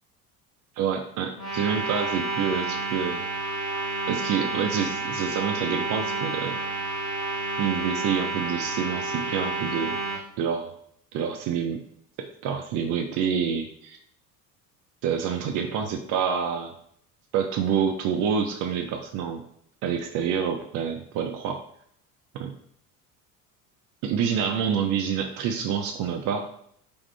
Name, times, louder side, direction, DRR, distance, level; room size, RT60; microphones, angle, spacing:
voice 1, 0.8-3.5 4.1-6.6 7.6-10.0 10.4-10.8 11.1-11.8 12.2-14.0 15.0-16.7 17.3-19.4 19.8-21.6 22.3-22.5 24.0-26.5, right 7 dB, 45° right, 4 dB, 0.6 m, -27 dB
sound 1, 1.3-10.2, right 2 dB, 80° left, 1.6 m, -30 dB
4.3 x 3.6 x 3.3 m, 0.66 s
figure-of-eight pair, 65°, 46 cm